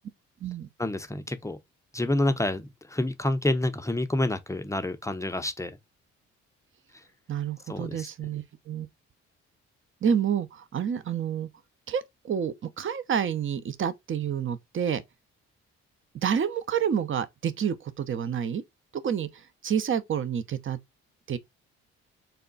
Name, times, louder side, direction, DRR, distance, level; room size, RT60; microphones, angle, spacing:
voice 1, 0.8-1.6 1.9-5.8 7.7-8.1, left 1 dB, 10° left, 0.6 m, -28 dB
voice 2, 7.3-8.9 10.0-11.5 11.9-15.0 16.2-18.6 19.0-20.8 21.3-21.4, right 8 dB, 40° right, 0.6 m, -29 dB
3.4 x 2.3 x 3.9 m
supercardioid pair, 55°, 33 cm